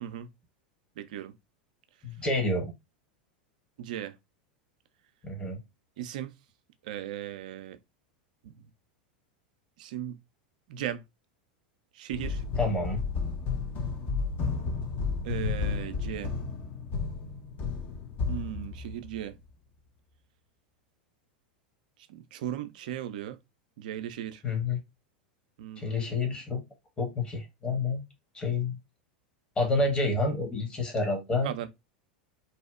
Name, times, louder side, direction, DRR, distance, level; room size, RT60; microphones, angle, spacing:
voice 1, 1.0-1.3 3.8-4.1 6.0-6.3 6.8-7.8 9.8-10.2 10.7-11.0 11.9-12.4 15.2-16.3 18.3-19.4 22.1-23.4 23.8-24.4 25.6-26.2 31.4-31.7, right 11 dB, 65° right, 0.3 m, -37 dB
voice 2, 2.0-2.7 5.2-5.6 12.6-13.0 24.4-24.8 25.8-26.6 27.0-28.0 28.3-28.8 29.6-31.5, left 3 dB, 20° left, 1.0 m, -28 dB
sound 1, 12.1-19.3, left 5 dB, 35° left, 0.6 m, -32 dB
2.7 x 2.0 x 2.3 m
hypercardioid pair, 90°, 5 cm